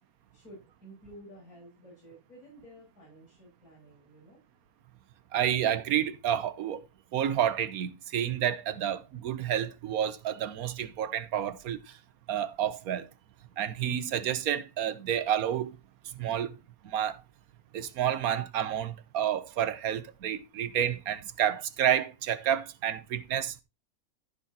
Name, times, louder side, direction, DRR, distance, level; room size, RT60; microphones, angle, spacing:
voice 1, 0.3-4.4, right 1 dB, 90° left, 7.6 m, -52 dB
voice 2, 5.3-6.8 7.1-11.8 12.3-13.1 13.6-15.7 16.1-16.5 16.8-17.2 17.7-23.5, right 10 dB, 75° right, 1.3 m, -29 dB
15.0 x 6.2 x 2.9 m
omnidirectional pair, 1.5 m